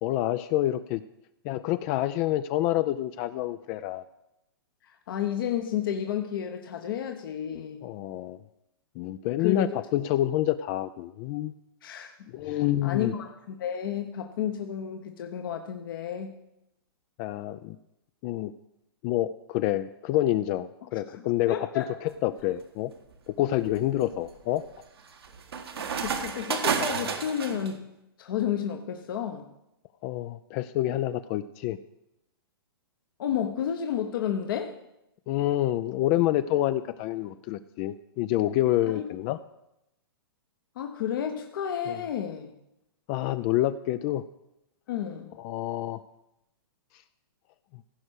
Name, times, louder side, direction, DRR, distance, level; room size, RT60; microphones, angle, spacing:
voice 1, 0.0-1.0 1.4-4.0 7.8-8.4 9.0-11.5 12.3-13.1 17.2-17.8 18.2-18.5 19.0-21.8 22.2-22.9 23.3-24.6 30.0-31.8 35.3-39.4 41.9-42.0 43.1-44.2 45.4-46.0, left 14 dB, 35° left, 12 dB, 0.4 m, -27 dB
voice 2, 4.8-7.8 9.4-9.8 11.8-16.3 21.1-22.1 25.7-27.8 28.2-29.5 33.2-34.8 38.8-39.0 40.8-42.5 44.9-45.3, left 9 dB, 60° left, 5 dB, 1.0 m, -32 dB
sound 1, 22.1-22.5 23.1-27.7, right 6 dB, 80° right, 1.6 m, -32 dB
15.5 x 5.4 x 6.4 m, 0.87 s
hypercardioid pair, 125°, 13 cm